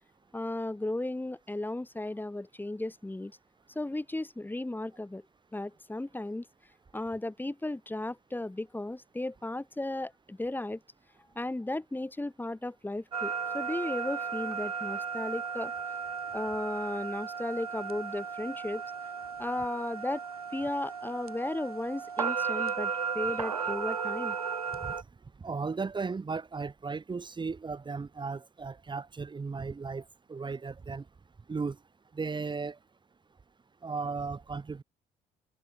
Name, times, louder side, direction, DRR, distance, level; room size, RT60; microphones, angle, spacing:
voice 1, 0.3-3.4 3.7-5.2 5.5-6.5 6.9-10.8 11.3-15.7 16.3-18.8 19.4-20.2 20.5-24.4, left 2 dB, 10° left, 6.7 m, -35 dB
sound 1, 13.1-25.0, right 6 dB, 85° right, 1.3 m, -35 dB
voice 2, 25.4-30.0 30.3-31.0 31.5-31.8 32.1-32.8 33.8-34.8, right 4 dB, 25° right, 3.1 m, -35 dB
figure-of-eight pair, 55°, 18 cm